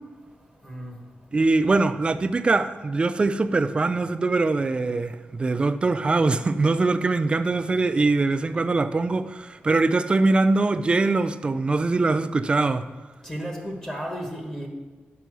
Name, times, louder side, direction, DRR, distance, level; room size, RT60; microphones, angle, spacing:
voice 1, 0.6-1.0 13.2-14.7, equal, 15° left, 1.2 m, -33 dB
voice 2, 1.3-12.9, right 3 dB, 25° right, 0.3 m, -22 dB
9.3 x 5.5 x 6.2 m
wide cardioid pair, 180°, 4 cm